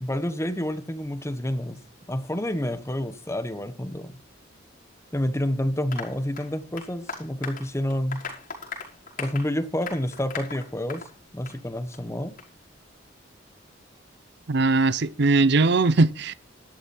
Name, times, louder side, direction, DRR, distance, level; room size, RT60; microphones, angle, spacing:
voice 1, 0.0-1.8 2.1-4.2 5.1-8.2 9.2-11.0 11.3-12.4, left 1 dB, 15° left, 1.3 m, -29 dB
Applause, 5.9-11.1 11.5-11.6 11.9-12.0 12.4-12.5, left 5 dB, 45° left, 5.6 m, -38 dB
voice 2, 14.5-16.3, right 3 dB, 60° right, 0.6 m, -20 dB
13.5 x 12.0 x 4.4 m
head